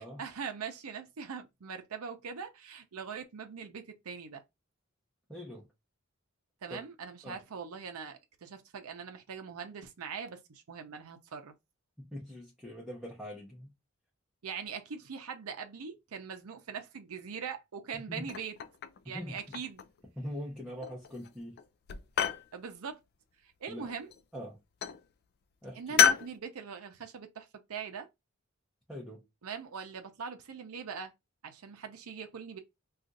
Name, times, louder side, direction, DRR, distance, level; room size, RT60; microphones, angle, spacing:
voice 1, 0.0-4.4 6.6-11.5 14.4-18.5 19.1-19.8 22.5-23.0 23.4-24.1 25.8-28.1 29.4-31.1 31.4-32.6, right 6 dB, 90° right, 0.6 m, -42 dB
voice 2, 5.3-5.7 6.7-6.8 7.2-7.4 12.0-13.7 17.9-18.2 19.1-19.4 20.2-21.6 22.1-22.4 23.7-23.9 24.3-24.6 25.6-26.1 28.9-29.2, equal, 5° right, 0.8 m, -42 dB
sound 1, 18.3-19.0 19.4-20.0 20.8-21.3 21.6-22.5 23.9-24.4 24.8-25.0 26.0-26.3, left 8 dB, 45° left, 0.3 m, -29 dB
2.5 x 2.4 x 3.9 m
head